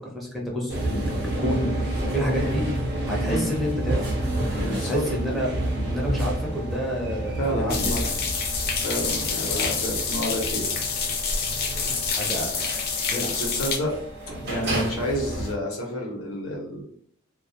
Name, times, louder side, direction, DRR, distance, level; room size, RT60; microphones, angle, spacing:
voice 1, 0.0-2.7 3.1-4.1 4.5-7.9 12.1-12.8 13.1-13.4 14.5-14.8, equal, ahead, -3 dB, 0.5 m, -29 dB
sound 1, 0.7-15.5, right 1 dB, 55° right, 0.7 m, -30 dB
voice 2, 3.2-3.5 4.6-5.1 7.4-8.1 8.8-10.7 13.3-13.9 14.4-16.8, equal, 80° left, 0 dB, 0.8 m, -29 dB
sound 2, 7.7-13.8, left 5 dB, 50° left, 0.4 m, -27 dB
2.2 x 2.1 x 2.7 m, 0.64 s
head